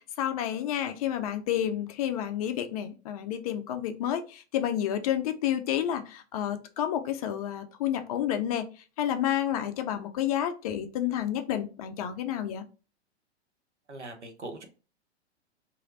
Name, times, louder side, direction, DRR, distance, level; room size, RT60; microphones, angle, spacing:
voice 1, 0.0-8.7 9.0-12.6, left 10 dB, 35° left, 8 dB, 0.4 m, -30 dB
voice 2, 13.9-14.7, right 2 dB, 85° right, 5 dB, 0.8 m, -41 dB
3.1 x 2.6 x 2.5 m, 0.34 s
figure-of-eight pair, 100°, 34 cm